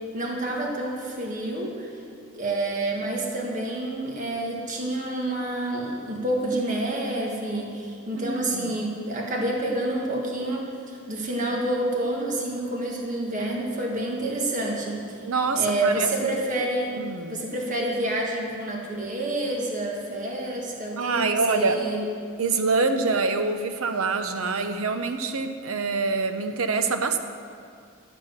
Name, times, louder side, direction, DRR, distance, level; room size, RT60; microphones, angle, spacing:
voice 1, 0.1-1.9 2.3-15.2 15.6-17.0 17.3-22.0, right 1 dB, 35° right, -1 dB, 1.7 m, -28 dB
voice 2, 8.1-8.7 15.2-16.1 17.0-17.4 21.0-21.8 22.4-27.2, right 4 dB, 80° right, 8 dB, 0.9 m, -25 dB
12.5 x 7.5 x 6.7 m, 2.3 s
head